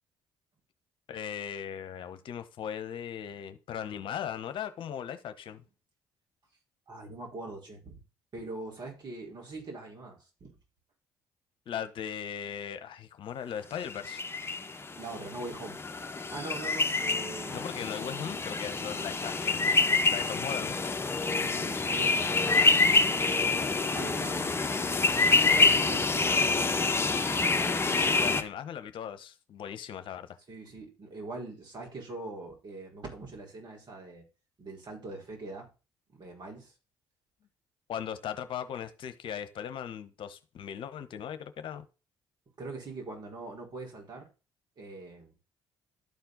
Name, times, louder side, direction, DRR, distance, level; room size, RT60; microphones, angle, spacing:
voice 1, 1.1-5.6 11.7-14.2 17.5-19.8 20.1-20.8 27.9-30.4 37.9-41.9, left 9 dB, 60° left, 1.1 m, -38 dB
voice 2, 6.9-8.0 8.3-10.6 15.0-15.8 16.3-17.8 21.2-23.3 23.8-24.6 25.5-26.7 30.5-34.2 34.6-35.7 36.1-36.7 42.6-44.3 44.8-45.3, right 2 dB, 50° right, 4.6 m, -42 dB
sound 1, 13.9-28.4, left 3 dB, 25° left, 1.4 m, -27 dB
12.5 x 4.4 x 3.9 m
hypercardioid pair, 55°, 10 cm